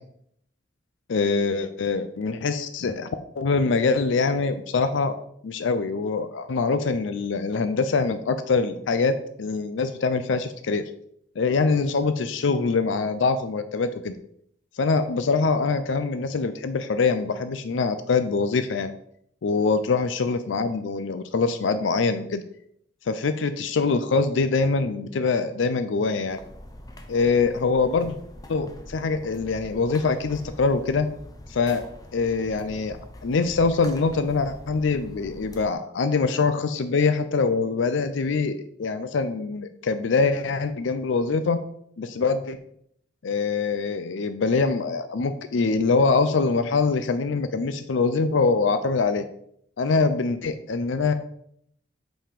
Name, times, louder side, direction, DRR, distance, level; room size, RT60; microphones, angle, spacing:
voice 1, 1.1-3.1 3.3-5.2 5.4-10.8 11.4-14.1 14.8-18.9 19.4-22.4 23.1-26.4 27.1-28.2 28.5-31.1 31.5-31.8 32.1-33.0 33.2-41.6 42.0-42.6 43.2-49.3 49.8-51.1, left 4 dB, 80° left, 10 dB, 0.4 m, -24 dB
sound 1, 26.3-35.7, left 1 dB, 20° left, 0.7 m, -44 dB
5.6 x 5.5 x 5.0 m, 0.70 s
head